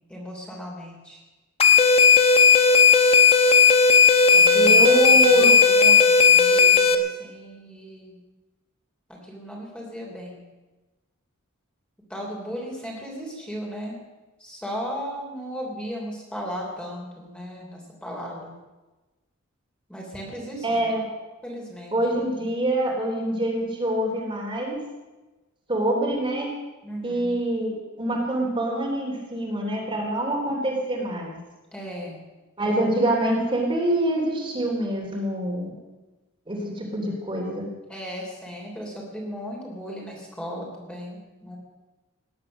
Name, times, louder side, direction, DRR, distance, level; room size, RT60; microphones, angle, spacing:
voice 1, 0.1-1.2 4.3-8.1 9.1-10.4 12.1-14.0 14.4-18.5 19.9-20.9 21.4-22.0 26.8-27.4 31.7-32.2 37.9-41.6, equal, 5° left, -2 dB, 3.3 m, -36 dB
sound 1, 1.6-6.9, left 5 dB, 30° left, 1.0 m, -15 dB
voice 2, 4.5-5.5 20.6-21.0 21.9-24.8 25.7-26.5 27.0-31.3 32.6-35.7 36.5-37.7, right 1 dB, 25° right, -2 dB, 3.3 m, -25 dB
18.5 x 10.5 x 6.5 m, 1.2 s
head